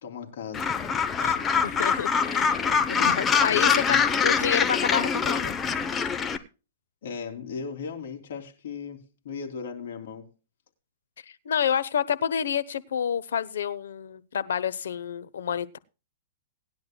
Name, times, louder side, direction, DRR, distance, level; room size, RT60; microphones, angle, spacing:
voice 1, 0.0-0.7 2.9-4.0 7.0-10.3, left 6 dB, 70° left, 3.1 m, -37 dB
Gull seagull, 0.5-6.4, left 6 dB, 15° left, 0.9 m, -24 dB
voice 2, 1.6-2.6 3.2-5.5 11.4-15.8, left 8 dB, 85° left, 0.9 m, -28 dB
19.0 x 10.5 x 2.3 m
hypercardioid pair, 150°, 0 cm